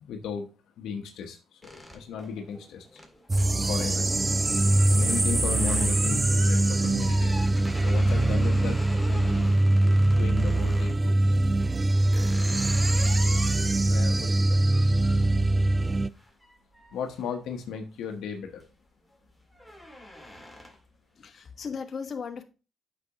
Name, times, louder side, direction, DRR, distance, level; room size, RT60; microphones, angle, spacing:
voice 1, 0.0-0.5 0.8-3.0 3.7-7.3 7.8-8.8 9.1-9.5 10.1-11.1 13.9-15.4 16.9-18.6, left 6 dB, 80° left, 4 dB, 1.0 m, -35 dB
sound 1, 1.6-11.0 11.6-18.0 18.4-18.8 19.1-21.0, left 1 dB, ahead, 1.9 m, -45 dB
sound 2, 3.3-16.1, right 2 dB, 25° right, 0.3 m, -23 dB
voice 2, 21.1-22.4, left 6 dB, 50° left, 4 dB, 1.2 m, -36 dB
8.3 x 6.0 x 2.9 m, 0.33 s
cardioid pair, 90°, 0 cm